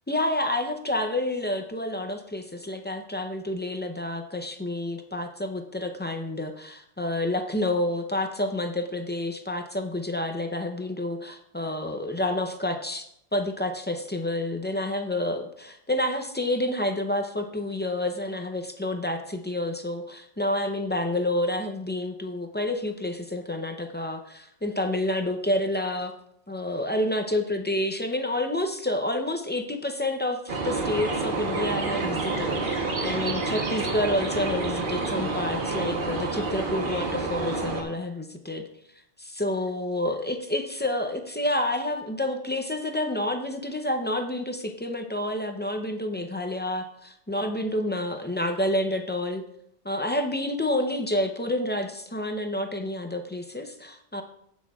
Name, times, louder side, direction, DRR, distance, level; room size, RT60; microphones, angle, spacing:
voice 1, 0.1-13.0 13.3-26.1 26.5-38.7 39.2-49.4 49.8-54.2, left 1 dB, 15° left, 6 dB, 0.4 m, -29 dB
sound 1, 30.5-37.8, right 3 dB, 50° right, 1.2 m, -28 dB
16.0 x 6.2 x 2.4 m, 0.73 s
omnidirectional pair, 1.2 m